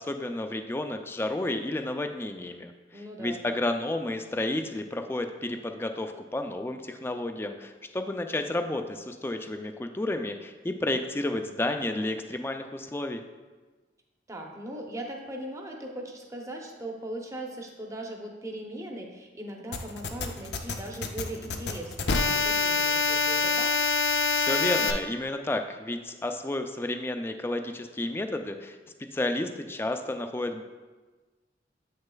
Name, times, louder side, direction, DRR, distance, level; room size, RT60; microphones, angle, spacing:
voice 1, 0.0-13.2 24.3-28.8 29.1-30.6, left 1 dB, 15° left, 6 dB, 0.3 m, -31 dB
voice 2, 2.9-3.4 14.3-23.7, right 1 dB, 20° right, 1 dB, 0.7 m, -39 dB
sound 1, 19.7-24.9, left 4 dB, 65° left, 0.5 m, -26 dB
8.0 x 6.3 x 2.3 m, 1.3 s
head